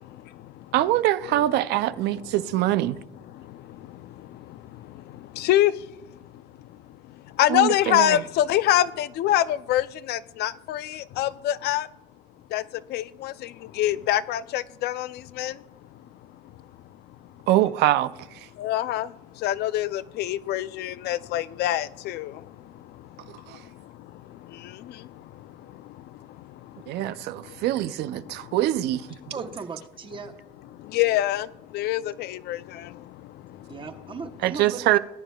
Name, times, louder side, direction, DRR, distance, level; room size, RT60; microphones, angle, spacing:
voice 1, 0.7-3.0 7.5-8.2 17.5-18.1 23.5-23.6 26.9-29.1 34.4-35.0, right 14 dB, 80° right, 0.4 m, -23 dB
voice 2, 5.4-5.7 7.4-11.9 12.5-12.6 12.9-13.3 13.8-15.5 18.6-19.1 19.4-22.3 30.9-31.5 31.7-32.8, left 13 dB, 75° left, 0.4 m, -24 dB
voice 3, 29.3-30.3 33.7-35.0, right 5 dB, 30° right, 0.9 m, -37 dB
19.5 x 9.0 x 2.3 m
cardioid pair, 110°, 17 cm